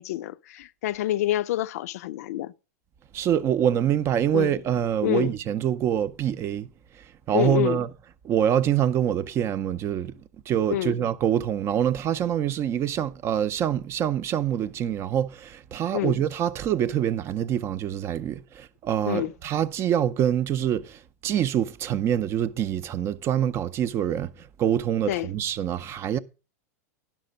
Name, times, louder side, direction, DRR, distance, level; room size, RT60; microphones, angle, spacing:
voice 1, 0.0-2.5 4.3-4.6 5.0-5.3 7.3-7.8 10.7-11.0 15.9-16.2 19.1-19.3 25.1-25.3, left 14 dB, 70° left, 0.5 m, -27 dB
voice 2, 3.1-6.7 6.9-8.0 8.2-10.2 10.5-26.2, right 10 dB, 30° right, 0.5 m, -25 dB
11.0 x 5.8 x 5.1 m
hypercardioid pair, 130°, 9 cm